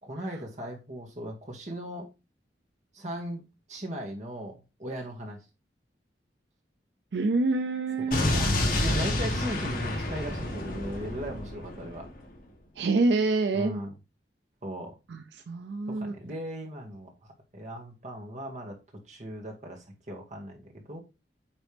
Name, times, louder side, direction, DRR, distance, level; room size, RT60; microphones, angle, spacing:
voice 1, 0.0-2.1 2.9-3.4 3.7-5.4 8.1-12.1 13.5-13.9 14.6-14.9 15.9-17.1 17.5-18.8 19.1-21.0, equal, 40° right, 2.1 m, -38 dB
voice 2, 7.1-8.2 12.8-13.8 15.1-16.1, right 3 dB, 80° right, 0.5 m, -26 dB
Explosion, 8.1-12.2, left 1 dB, 55° left, 1.9 m, -29 dB
9.0 x 4.1 x 3.4 m
head